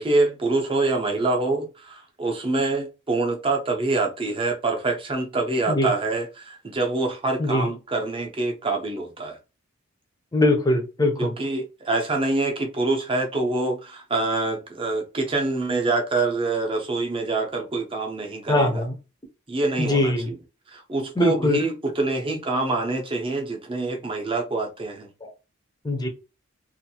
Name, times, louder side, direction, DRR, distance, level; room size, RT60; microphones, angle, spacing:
voice 1, 0.0-9.4 11.2-18.8 19.5-20.4 20.7-25.1, right 3 dB, 25° right, 0.6 m, -25 dB
voice 2, 7.4-7.7 10.3-11.3 18.5-18.9 19.8-20.3 21.2-21.6 25.2-25.3 25.8-26.1, left 1 dB, 20° left, 0.6 m, -21 dB
2.5 x 2.5 x 2.8 m
head